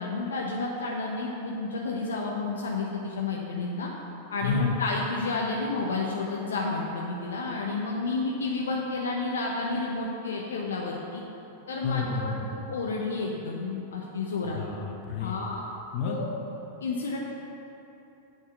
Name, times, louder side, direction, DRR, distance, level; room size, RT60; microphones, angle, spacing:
voice 1, 0.0-3.9 4.3-11.2 11.7-14.6 15.2-15.6 16.0-16.4 16.8-17.2, left 3 dB, 65° left, -2 dB, 0.8 m, -31 dB
voice 2, 4.4-4.8 11.8-12.5 14.4-15.3 15.9-16.2, left 5 dB, 45° left, 1 dB, 1.2 m, -30 dB
8.5 x 4.7 x 7.0 m, 3.0 s
figure-of-eight pair, 90°, 0 cm